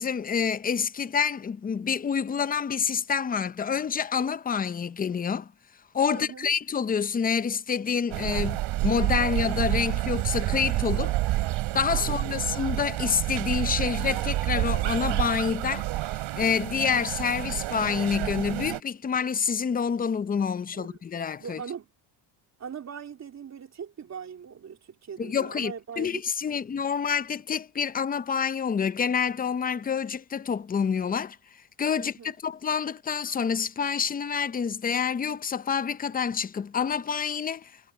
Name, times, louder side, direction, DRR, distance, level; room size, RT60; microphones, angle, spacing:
voice 1, 0.0-5.5 5.9-11.1 11.7-21.6 25.2-31.4 31.8-37.7, left 6 dB, 20° left, 0.6 m, -27 dB
voice 2, 6.1-6.5 12.0-12.4 20.7-21.0 21.4-21.9 22.6-26.1 26.5-26.6 32.0-32.3, right 7 dB, 35° right, 3.4 m, -40 dB
sound 1, 8.1-18.8, right 17 dB, 75° right, 3.9 m, -29 dB
cardioid pair, 130°, 46 cm